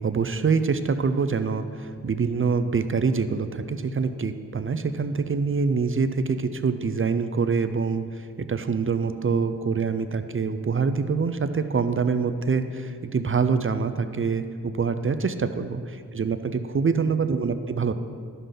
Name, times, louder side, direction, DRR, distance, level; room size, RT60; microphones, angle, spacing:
voice 1, 0.0-15.8 16.1-17.9, right 5 dB, 35° right, 10 dB, 0.5 m, -25 dB
11.0 x 6.7 x 3.8 m, 2.2 s
cardioid pair, 45°, 35 cm